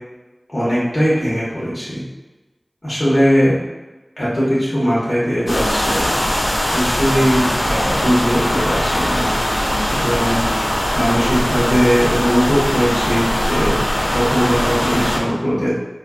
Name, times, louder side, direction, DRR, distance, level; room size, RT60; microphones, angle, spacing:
voice 1, 0.5-2.0 2.8-3.6 4.2-6.1 6.7-9.3 9.9-10.5 10.9-13.8 14.1-15.7, equal, 50° left, -10 dB, 1.4 m, -19 dB
sound 1, 5.5-15.2, equal, 75° left, 0.7 m, -20 dB
4.2 x 2.6 x 2.4 m, 1.1 s
wide cardioid pair, 50°, 0 cm